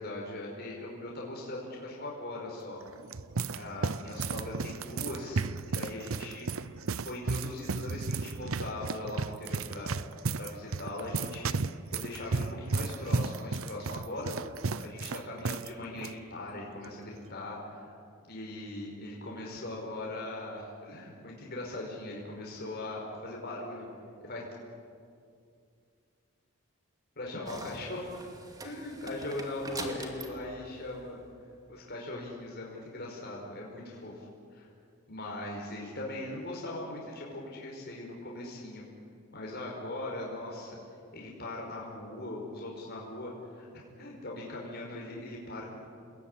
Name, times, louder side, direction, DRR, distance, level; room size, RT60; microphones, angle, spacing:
voice 1, 0.0-2.8 3.5-6.5 7.0-9.9 10.4-11.5 11.9-18.0 18.3-23.9 24.2-24.4 27.2-28.1 28.6-31.2 31.7-34.3 34.5-34.7 35.1-38.8 39.3-40.8 41.1-45.8, left 2 dB, 45° left, -2 dB, 5.3 m, -40 dB
sound 1, 2.8-15.7 16.0-16.1 16.8-17.1, right 4 dB, 70° right, 0.7 m, -34 dB
sound 2, 27.5-31.7, right 2 dB, 15° right, 2.4 m, -44 dB
28.0 x 21.0 x 10.0 m, 2.4 s
head